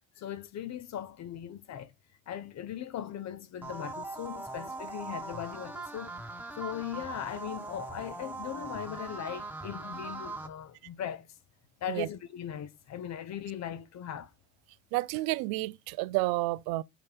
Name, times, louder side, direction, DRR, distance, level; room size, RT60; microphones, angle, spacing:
voice 1, 0.2-1.9 2.3-6.2 6.6-11.3 11.8-14.3, left 10 dB, 45° left, 0.8 m, -39 dB
sound 1, 3.6-10.5, right 3 dB, 5° right, 1.3 m, -41 dB
voice 2, 14.9-16.8, right 19 dB, 75° right, 0.5 m, -30 dB
7.5 x 2.7 x 5.1 m
supercardioid pair, 70°, 37 cm